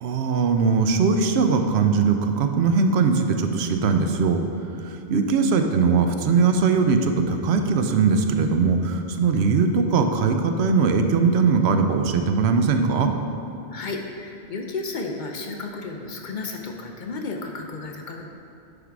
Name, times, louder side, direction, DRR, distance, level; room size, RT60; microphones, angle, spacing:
voice 1, 0.0-4.4 4.8-13.1, right 5 dB, 80° right, 6 dB, 0.8 m, -20 dB
voice 2, 13.7-18.3, left 3 dB, 55° left, 2 dB, 0.7 m, -33 dB
9.9 x 3.6 x 4.6 m, 2.7 s
omnidirectional pair, 1.1 m